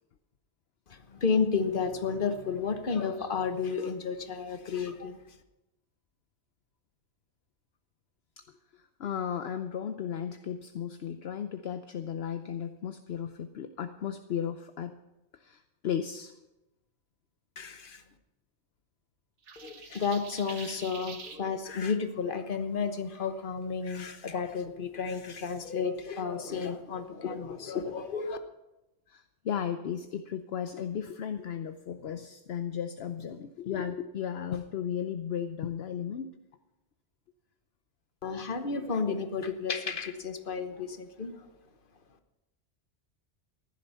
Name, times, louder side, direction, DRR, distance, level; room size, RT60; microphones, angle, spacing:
voice 1, 0.9-5.2 17.6-18.0 19.6-28.4 38.2-41.5, left 5 dB, 50° left, 8 dB, 1.2 m, -32 dB
voice 2, 8.7-15.0 15.3-16.3 29.1-36.3, left 8 dB, 65° left, 8 dB, 0.9 m, -35 dB
sound 1, 19.5-21.4, right 5 dB, 85° right, 1.5 m, -45 dB
15.0 x 11.5 x 5.6 m, 0.99 s
omnidirectional pair, 1.2 m